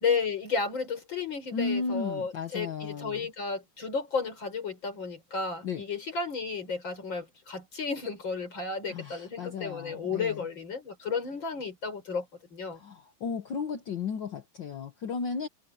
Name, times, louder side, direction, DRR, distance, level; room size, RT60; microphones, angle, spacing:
voice 1, 0.0-12.3 12.5-12.8, left 5 dB, 35° left, 5.3 m, -33 dB
voice 2, 1.5-3.3 5.6-5.8 8.9-10.5 12.7-15.5, left 5 dB, 75° left, 1.0 m, -34 dB
omnidirectional pair, 3.9 m